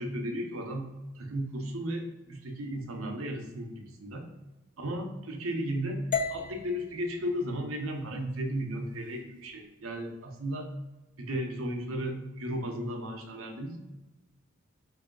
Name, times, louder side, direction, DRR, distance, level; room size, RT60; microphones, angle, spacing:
voice 1, 0.0-4.3 4.8-6.0 6.3-10.7 11.2-13.8, equal, 85° right, 3 dB, 0.8 m, -35 dB
sound 1, 6.1-10.2, left 5 dB, 40° left, 0.5 m, -38 dB
4.8 x 2.7 x 3.8 m, 1.0 s
head